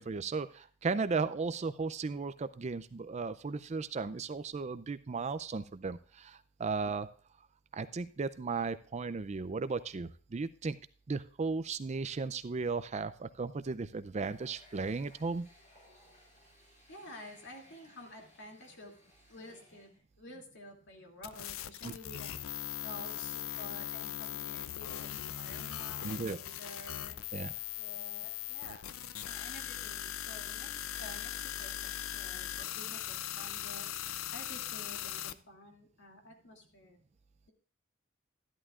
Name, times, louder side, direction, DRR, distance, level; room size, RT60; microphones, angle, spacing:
voice 1, 0.0-7.1 7.7-10.8 11.1-15.5 21.8-21.9 26.0-26.4 27.3-27.5, right 4 dB, 35° right, 13 dB, 0.4 m, -35 dB
Water tap faucet, 14.2-20.0, left 1 dB, 40° left, 4.6 m, -62 dB
voice 2, 16.9-18.9 19.3-19.9 20.2-27.2 27.7-28.8 29.2-33.9 34.3-37.0, left 1 dB, 60° left, 1 dB, 2.6 m, -51 dB
sound 1, 21.2-35.3, left 12 dB, 80° left, 0.5 m, -40 dB
13.0 x 11.5 x 2.4 m, 0.40 s
head